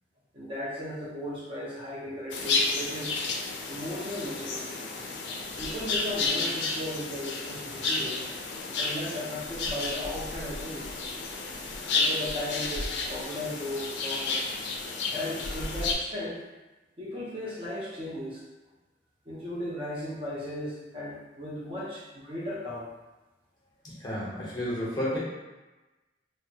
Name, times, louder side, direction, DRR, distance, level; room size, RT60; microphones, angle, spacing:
voice 1, 0.3-3.2 3.7-4.8 5.6-8.3 8.8-10.9 11.9-14.4 15.1-16.4 17.0-18.4 19.3-22.9, left 1 dB, 30° right, -7 dB, 0.7 m, -36 dB
sound 1, 2.3-15.9, left 3 dB, 75° left, 0.4 m, -32 dB
voice 2, 23.8-25.2, equal, 20° left, -7 dB, 0.7 m, -31 dB
2.8 x 2.1 x 2.7 m, 1.1 s
head